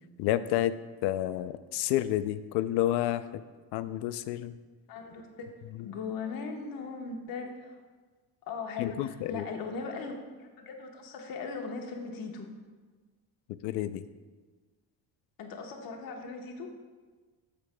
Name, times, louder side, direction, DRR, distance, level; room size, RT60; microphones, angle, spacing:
voice 1, 0.2-0.7 1.0-3.4 3.7-4.5 8.8-9.4 13.6-14.0, left 13 dB, 85° left, 13 dB, 0.5 m, -29 dB
voice 2, 4.9-5.5 5.8-7.8 8.4-12.5 15.4-16.7, left 4 dB, 60° left, 2 dB, 1.2 m, -39 dB
14.5 x 6.7 x 2.2 m, 1.4 s
cardioid pair, 170°, 39 cm